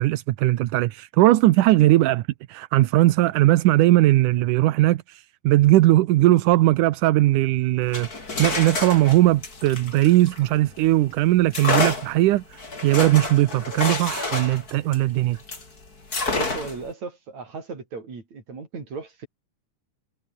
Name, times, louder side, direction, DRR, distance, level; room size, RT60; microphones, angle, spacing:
voice 1, 0.0-2.2 2.5-8.1 8.4-15.4, right 16 dB, 80° right, 2.4 m, -19 dB
sound 1, 7.8-10.9 11.5-15.7 16.1-16.9, left 3 dB, 30° left, 4.5 m, -29 dB
voice 2, 16.3-19.3, right 4 dB, 60° right, 6.6 m, -36 dB
omnidirectional pair, 3.6 m